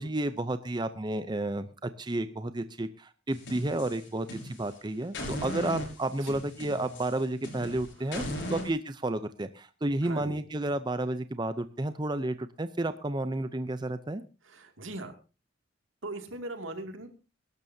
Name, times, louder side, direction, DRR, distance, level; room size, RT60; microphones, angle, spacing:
voice 1, 0.0-8.2 8.5-14.2, right 2 dB, 20° right, 11 dB, 0.6 m, -31 dB
sound 1, 3.3-4.7 5.1-8.7, equal, 65° left, 5.5 m, -38 dB
voice 2, 8.0-8.6 10.0-10.4 14.4-15.1 16.0-17.1, right 2 dB, 85° right, 6 dB, 2.4 m, -40 dB
23.5 x 12.5 x 2.8 m, 0.31 s
head